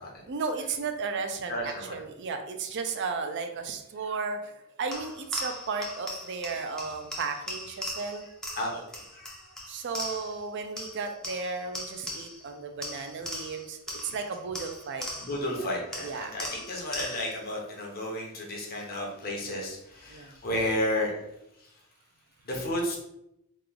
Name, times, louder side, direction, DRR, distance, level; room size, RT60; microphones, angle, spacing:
voice 1, 0.3-8.3 9.7-15.1 15.5-15.6 16.0-16.3 20.1-20.3, right 4 dB, 55° right, 6 dB, 0.4 m, -34 dB
voice 2, 1.5-2.0 8.6-9.4 15.2-21.1 22.4-23.0, left 1 dB, 45° left, -2 dB, 0.9 m, -32 dB
sound 1, 4.9-10.5 10.8-12.5 12.8-15.5 15.9-17.4, left 1 dB, 5° left, 0.5 m, -39 dB
3.0 x 2.3 x 3.7 m, 0.82 s
head